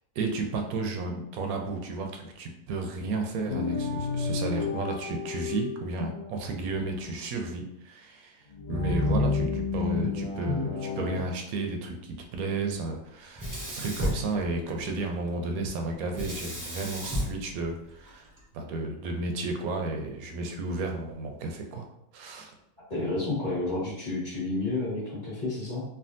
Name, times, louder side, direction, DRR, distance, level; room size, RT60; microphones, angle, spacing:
voice 1, 0.2-18.3 18.5-21.9 22.1-22.5, right 3 dB, 80° right, 3 dB, 1.0 m, -33 dB
sound 1, 3.5-7.0 8.6-11.2, left 4 dB, 50° left, 0.6 m, -30 dB
Sink (filling or washing), 13.4-15.0 16.1-18.4, equal, 30° right, 0.3 m, -34 dB
voice 2, 22.9-25.8, left 2 dB, 35° left, -9 dB, 1.4 m, -30 dB
3.4 x 2.4 x 2.5 m, 0.78 s
omnidirectional pair, 1.5 m